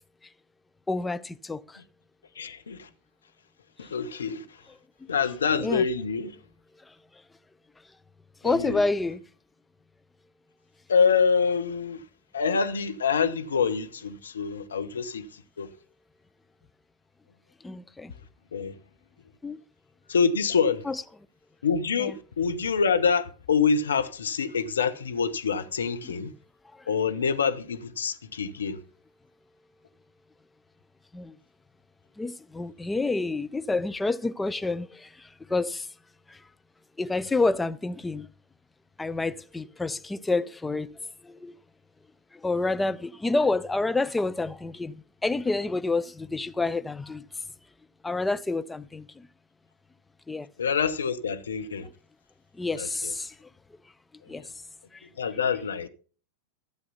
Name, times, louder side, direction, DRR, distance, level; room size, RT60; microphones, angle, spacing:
voice 1, 0.9-1.8 5.6-5.8 8.4-9.2 17.6-18.1 19.4-19.6 20.9-21.0 22.0-22.1 26.0-26.3 31.1-31.3 32.2-35.9 36.3-36.4 37.0-38.3 39.0-41.0 41.2-41.5 42.4-47.3 48.0-49.3 50.3-50.5 52.6-53.3 54.3-54.4, left 3 dB, 10° left, 0.5 m, -28 dB
voice 2, 2.4-2.9 3.8-4.4 5.1-6.3 8.4-8.8 10.9-12.0 12.3-15.7 18.5-18.7 20.1-20.8 21.6-26.3 26.9-28.8 50.6-51.9 52.7-53.1 54.3-54.4 55.2-55.9, left 6 dB, 70° left, 1.1 m, -26 dB
13.5 x 7.7 x 5.6 m
figure-of-eight pair, 90°, 0 cm